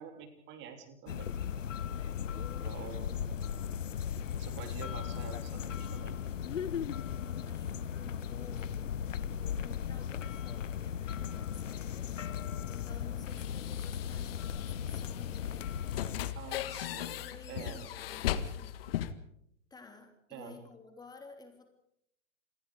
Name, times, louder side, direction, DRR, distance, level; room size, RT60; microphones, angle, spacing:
voice 1, 0.0-1.4 2.3-3.5 4.3-6.2 16.3-17.2 17.5-17.8 20.3-20.6, right 7 dB, 25° right, 7 dB, 3.3 m, -47 dB
sound 1, 1.1-16.3, left 8 dB, 65° left, 1.1 m, -37 dB
voice 2, 7.3-12.1 12.7-16.0 16.9-18.7 19.7-21.7, left 4 dB, 10° left, 5 dB, 3.2 m, -54 dB
sound 2, 11.7-19.1, left 11 dB, 45° left, 1.7 m, -39 dB
28.0 x 21.0 x 4.9 m, 0.72 s
figure-of-eight pair, 115°, 41 cm